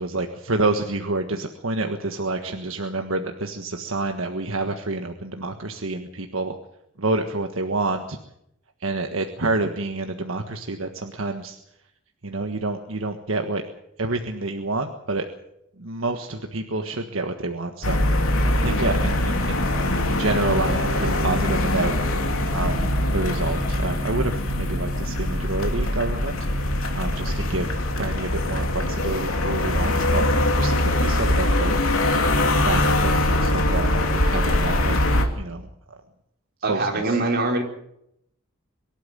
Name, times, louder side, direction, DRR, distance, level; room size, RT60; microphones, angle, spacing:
voice 1, 0.0-6.6 7.0-8.2 8.8-11.6 12.2-13.6 14.0-15.2 15.8-18.0 18.6-19.7 20.1-21.9 22.5-26.4 26.9-27.7 28.0-30.2 30.6-31.8 32.5-35.7 36.7-37.2, right 2 dB, 75° right, 5 dB, 1.5 m, -28 dB
sound 1, 17.8-35.3, left 1 dB, 80° left, 2.9 m, -22 dB
voice 2, 18.6-19.0 36.6-37.6, right 2 dB, 50° right, 1 dB, 4.3 m, -24 dB
23.5 x 12.5 x 9.0 m, 0.78 s
head